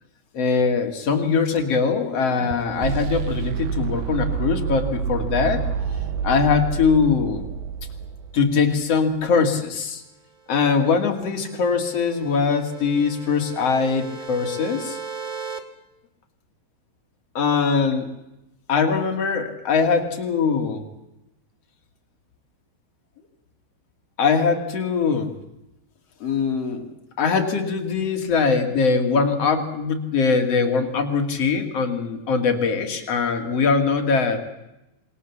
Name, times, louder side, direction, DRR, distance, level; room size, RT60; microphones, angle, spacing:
voice 1, 0.3-5.6 6.2-7.4 8.3-10.0 10.5-15.0 17.3-18.1 18.7-20.9 24.2-25.3 26.2-26.9 27.2-34.4, left 5 dB, 45° left, 4 dB, 3.1 m, -22 dB
sound 1, 0.6-8.7, right 7 dB, 80° right, 2.8 m, -29 dB
sound 2, 10.7-15.6, right 5 dB, 60° right, 0.4 m, -38 dB
27.0 x 22.5 x 7.2 m, 0.93 s
omnidirectional pair, 4.2 m